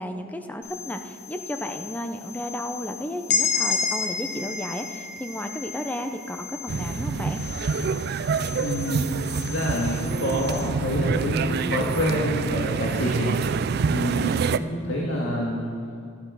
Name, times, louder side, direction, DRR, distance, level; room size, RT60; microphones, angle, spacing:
voice 1, 0.0-7.4 14.2-14.4, equal, 10° left, 6 dB, 0.7 m, -33 dB
sound 1, 0.6-10.6, left 8 dB, 90° left, 2.8 m, -41 dB
sound 2, 3.3-7.1, left 5 dB, 55° left, 1.2 m, -28 dB
sound 3, 6.7-14.6, right 5 dB, 50° right, 0.3 m, -26 dB
voice 2, 8.6-9.1 9.4-13.4 13.9-15.7, equal, 75° left, -3 dB, 1.9 m, -27 dB
12.0 x 12.0 x 5.6 m, 2.3 s
head